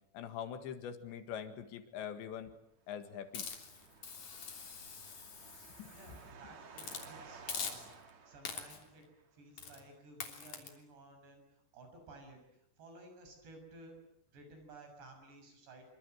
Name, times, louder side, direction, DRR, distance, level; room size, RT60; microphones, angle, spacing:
voice 1, 0.1-2.5 2.9-3.5 5.8-6.2, left 8 dB, 90° left, 9 dB, 4.2 m, -43 dB
sound 1, 2.9-9.2, right 5 dB, 45° right, 3.2 m, -56 dB
Hiss, 3.3-6.2 6.7-7.1 7.5-8.1 8.4-8.9 9.6-9.8 10.2-10.7, left 6 dB, 50° left, 4.5 m, -44 dB
voice 2, 5.5-7.9 8.3-9.1 9.3-11.5 11.7-14.0 14.3-15.8, right 2 dB, 75° right, 5 dB, 8.6 m, -56 dB
27.0 x 25.5 x 7.9 m, 0.78 s
omnidirectional pair, 5.0 m